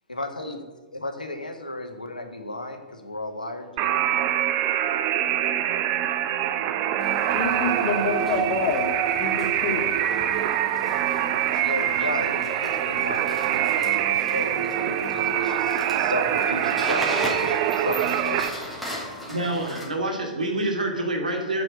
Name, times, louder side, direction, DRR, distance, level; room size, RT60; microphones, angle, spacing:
voice 1, 0.1-0.6 0.9-4.0 11.6-18.6, left 2 dB, 85° left, 1.6 m, -34 dB
sound 1, 3.8-18.5, right 10 dB, 35° right, 0.8 m, -24 dB
sound 2, 7.0-19.9, equal, ahead, 2.8 m, -38 dB
voice 2, 7.3-10.5, left 4 dB, 35° left, 2.1 m, -28 dB
voice 3, 19.3-21.6, right 1 dB, 75° right, 2.2 m, -27 dB
7.8 x 6.9 x 8.1 m
figure-of-eight pair, 110°, 4 cm